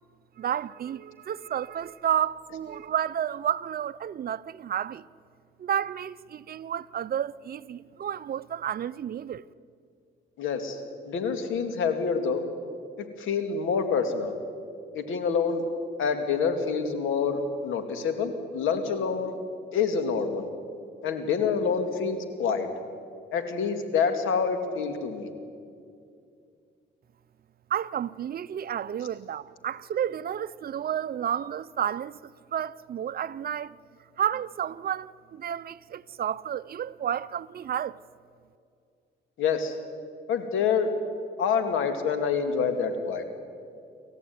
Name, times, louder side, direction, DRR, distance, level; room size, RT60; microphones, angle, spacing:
voice 1, 0.4-5.0 5.6-9.4 27.7-33.8 34.2-38.0, right 9 dB, 50° right, 0.7 m, -31 dB
voice 2, 10.4-10.8 11.1-12.4 13.0-14.3 14.9-15.7 16.0-19.4 19.7-20.5 21.0-22.7 23.3-25.3 39.4-39.7 40.3-40.9 41.4-43.2, left 6 dB, 80° left, 2.5 m, -27 dB
28.0 x 14.0 x 9.5 m
cardioid pair, 90°, 20 cm